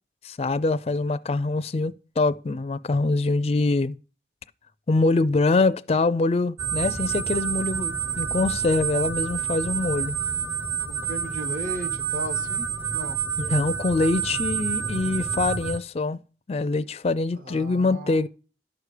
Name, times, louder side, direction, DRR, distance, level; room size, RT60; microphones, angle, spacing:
voice 1, 0.2-4.0 4.9-10.2 13.4-16.2 16.5-18.3, left 3 dB, 35° left, 0.4 m, -24 dB
sound 1, 6.6-15.8, right 7 dB, 15° right, 0.7 m, -28 dB
voice 2, 10.9-13.2 17.3-18.3, equal, 50° right, 1.4 m, -36 dB
11.5 x 4.9 x 6.6 m
head